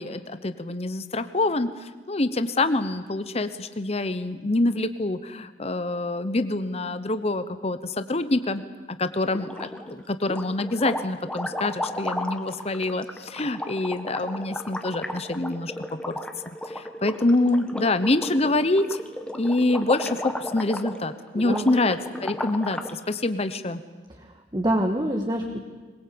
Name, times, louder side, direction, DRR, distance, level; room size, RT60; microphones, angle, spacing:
voice 1, 0.0-8.6 8.9-15.7 16.1-16.2 16.5-19.0 19.3-23.8, left 2 dB, 35° left, 11 dB, 0.9 m, -26 dB
sound 1, 9.3-9.9 10.2-23.0, left 1 dB, 5° left, 1.4 m, -34 dB
voice 2, 21.3-21.7 24.2-25.6, right 1 dB, 25° right, 2 dB, 1.6 m, -26 dB
22.0 x 21.5 x 8.7 m, 1.4 s
head